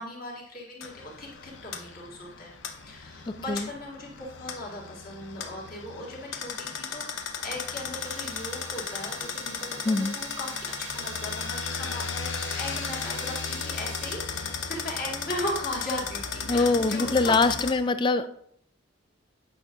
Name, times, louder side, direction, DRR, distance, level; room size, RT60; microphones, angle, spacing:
voice 1, 0.0-17.4, left 1 dB, 50° left, -3 dB, 1.8 m, -38 dB
sound 1, 0.8-17.7, left 6 dB, 75° left, 0.7 m, -35 dB
voice 2, 3.3-3.7 9.8-10.1 16.5-18.3, left 3 dB, 25° left, 12 dB, 0.3 m, -23 dB
sound 2, 8.0-14.1, right 8 dB, 65° right, 0.9 m, -45 dB
8.6 x 5.5 x 2.5 m, 0.66 s
head